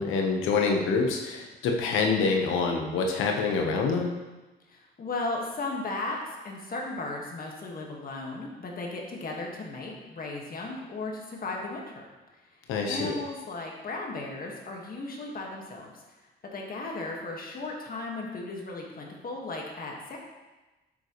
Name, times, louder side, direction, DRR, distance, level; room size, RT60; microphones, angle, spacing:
voice 1, 0.0-4.1 12.7-13.1, left 4 dB, 90° left, 2 dB, 1.2 m, -26 dB
voice 2, 4.7-12.0 12.5-12.6 12.9-16.0 16.5-20.2, left 2 dB, 45° left, -1 dB, 1.7 m, -36 dB
9.1 x 7.7 x 3.1 m, 1.1 s
cardioid pair, 90°, 20 cm